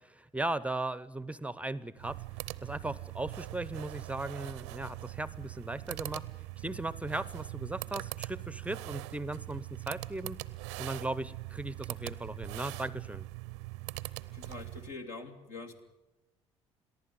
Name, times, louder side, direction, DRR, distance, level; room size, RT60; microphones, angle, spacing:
voice 1, 0.0-2.2 2.6-6.2 6.6-10.4 10.8-13.2, right 2 dB, 10° right, 18 dB, 0.7 m, -37 dB
sound 1, 1.9-15.0, right 20 dB, 75° right, 0.6 m, -42 dB
voice 2, 14.3-15.8, left 3 dB, 65° left, 4 dB, 2.5 m, -44 dB
22.5 x 14.5 x 9.8 m, 1.0 s
hypercardioid pair, 50°, 14 cm